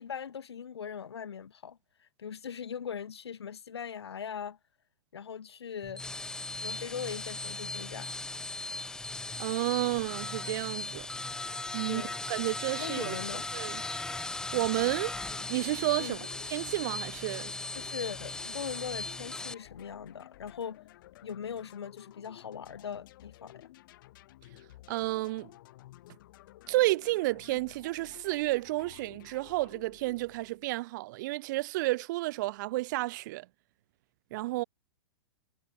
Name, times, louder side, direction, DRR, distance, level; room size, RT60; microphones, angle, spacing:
voice 1, 0.0-4.6 5.1-6.0 6.5-8.1 11.9-12.2 12.8-13.5 16.0-16.3 17.7-20.8 21.2-23.7, left 7 dB, 75° left, 1.2 m, -40 dB
sound 1, 5.8-19.5, left 2 dB, 5° left, 0.6 m, -38 dB
voice 2, 9.4-11.1 11.3-11.5 11.7-12.0 12.3-13.2 13.5-13.8 14.5-15.1 15.5-16.2 16.5-17.5 24.9-25.5 26.7-33.5 34.3-34.6, right 19 dB, 45° right, 0.6 m, -31 dB
sound 2, 14.8-30.8, left 16 dB, 50° left, 1.7 m, -54 dB
figure-of-eight pair, 110°, 14 cm